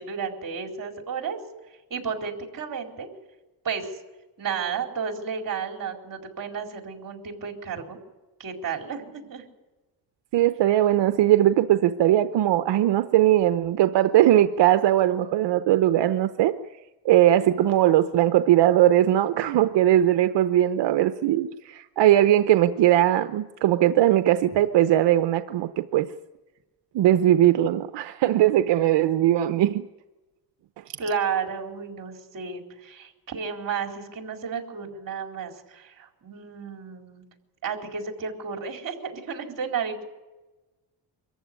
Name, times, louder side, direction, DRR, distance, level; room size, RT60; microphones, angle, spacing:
voice 1, 0.0-1.4 1.9-3.1 3.6-3.9 4.4-8.0 8.4-9.5 31.0-37.2 37.6-40.1, right 6 dB, 50° right, 3 dB, 4.4 m, -32 dB
voice 2, 10.3-16.5 17.0-26.1 26.9-29.9, right 13 dB, 85° right, 9 dB, 0.9 m, -20 dB
25.0 x 14.5 x 9.6 m, 1.1 s
cardioid pair, 100°, 41 cm